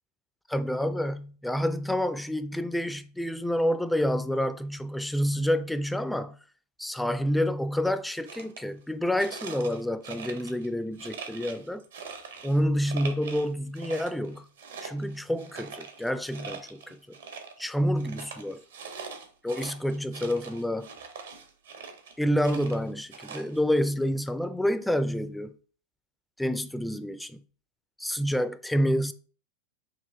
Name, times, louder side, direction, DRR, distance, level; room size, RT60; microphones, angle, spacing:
voice 1, 0.5-6.4 6.8-11.8 12.4-14.5 14.8-17.2 17.6-18.6 19.4-20.9 22.2-25.5 26.4-27.4 28.0-29.1, equal, 5° left, 0.3 m, -28 dB
sound 1, 8.1-8.6 9.2-10.7 11.0-12.6 12.8-13.5 13.7-17.7 18.0-22.1 22.4-23.8, right 5 dB, 65° right, 0.8 m, -43 dB
5.7 x 2.3 x 3.3 m
figure-of-eight pair, 90°, 0 cm